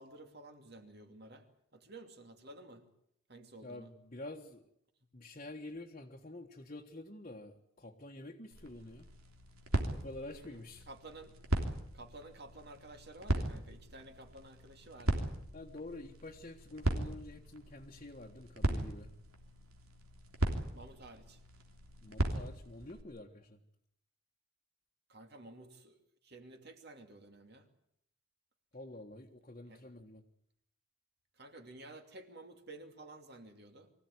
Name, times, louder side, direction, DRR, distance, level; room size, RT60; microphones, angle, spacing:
voice 1, 0.0-1.4 1.7-2.9 3.3-3.9 10.3-11.4 11.9-15.3 20.7-21.4 25.1-26.0 26.2-27.7 29.7-29.8 31.4-33.9, right 2 dB, 50° right, 6 dB, 2.6 m, -52 dB
voice 2, 3.6-4.7 5.1-9.1 9.9-10.9 15.5-19.1 22.0-23.6 28.7-30.2, left 2 dB, 35° left, 0 dB, 1.5 m, -48 dB
sound 1, 8.5-23.0, right 1 dB, 90° right, 3.2 m, -38 dB
24.0 x 16.0 x 9.6 m, 0.75 s
head